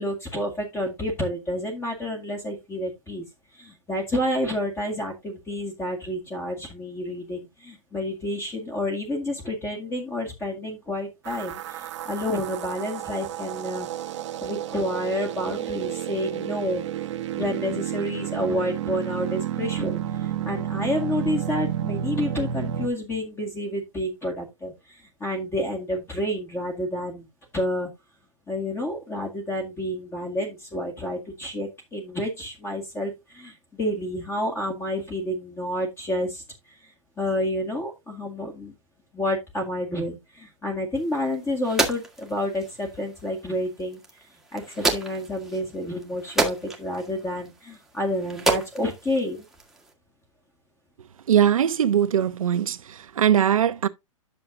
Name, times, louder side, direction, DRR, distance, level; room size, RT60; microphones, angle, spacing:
voice 1, 0.0-3.2 3.5-13.9 14.4-16.8 17.3-27.3 27.5-27.9 28.5-36.9 37.2-38.7 39.1-44.0 44.5-49.5, left 1 dB, 15° left, 2.0 m, -29 dB
sound 1, 11.3-22.9, right 10 dB, 60° right, 1.2 m, -31 dB
sound 2, 40.9-49.9, right 2 dB, ahead, 1.7 m, -31 dB
voice 2, 51.3-53.9, right 9 dB, 80° right, 1.0 m, -21 dB
11.0 x 6.6 x 2.7 m
hypercardioid pair, 140°, 17 cm